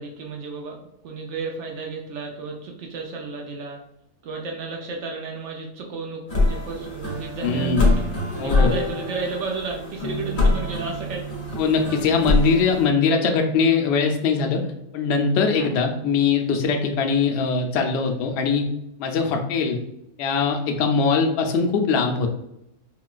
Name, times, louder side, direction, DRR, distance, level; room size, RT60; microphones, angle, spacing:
voice 1, 0.0-3.8 4.2-8.0 8.5-11.3 15.5-15.7, right 3 dB, 65° right, 1 dB, 0.8 m, -33 dB
sound 1, 6.3-12.9, left 2 dB, 40° left, 0.8 m, -24 dB
voice 2, 7.4-8.0 8.4-8.7 11.6-14.6 14.9-18.7 19.0-19.8 20.2-22.3, left 5 dB, 75° left, 4 dB, 0.6 m, -21 dB
3.6 x 2.3 x 2.3 m, 0.79 s
omnidirectional pair, 1.6 m